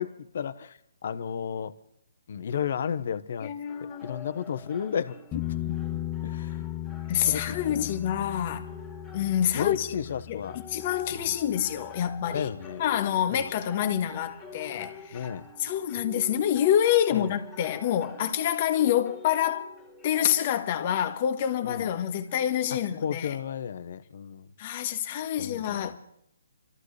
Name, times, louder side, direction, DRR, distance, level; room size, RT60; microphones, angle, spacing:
voice 1, 0.0-1.7 2.3-3.5 3.8-5.8 6.2-6.7 7.3-7.9 9.6-10.6 11.1-11.4 12.3-12.8 15.1-15.5 17.1-17.4 21.6-21.9 23.0-24.5 25.4-26.0, left 8 dB, 55° left, 1.0 m, -33 dB
voice 2, 3.4-4.2 7.1-8.7 9.1-9.9 10.3-10.4 10.7-12.5 12.8-15.3 15.6-19.6 20.0-23.4 24.6-26.0, left 10 dB, 35° left, 1.5 m, -27 dB
sound 1, 3.7-23.2, left 4 dB, ahead, 2.0 m, -47 dB
sound 2, 5.3-12.9 16.0-16.1, left 13 dB, 15° left, 0.9 m, -37 dB
27.5 x 13.5 x 3.3 m
hypercardioid pair, 155°, 0 cm